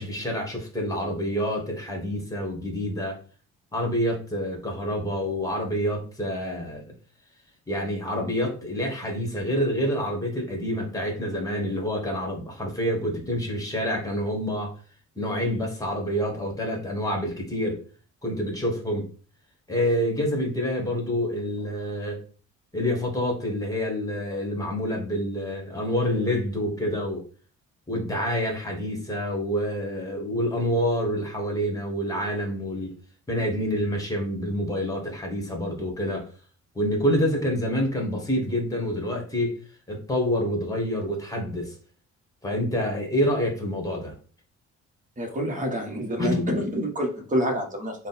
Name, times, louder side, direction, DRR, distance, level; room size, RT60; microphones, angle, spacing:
voice 1, 0.0-3.2 3.7-6.8 7.7-14.7 15.1-17.8 18.2-19.1 19.7-22.2 22.7-27.2 27.9-32.9 33.3-36.3 36.7-39.5 39.9-41.7 42.4-44.1 46.2-46.5, equal, 10° left, 1 dB, 1.4 m, -27 dB
voice 2, 45.2-48.1, equal, 25° right, 2 dB, 1.1 m, -28 dB
3.7 x 2.2 x 4.0 m, 0.40 s
cardioid pair, 90°, 30 cm